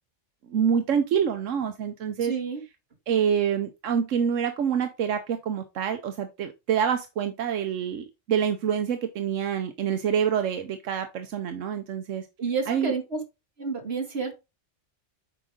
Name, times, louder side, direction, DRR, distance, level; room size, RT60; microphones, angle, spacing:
voice 1, 0.5-2.3 3.1-12.3 12.7-12.9, right 8 dB, 85° right, 1.2 m, -26 dB
voice 2, 2.2-2.6 12.4-13.2 13.6-14.4, right 4 dB, 55° right, 2.3 m, -29 dB
8.1 x 5.0 x 3.7 m
omnidirectional pair, 1.3 m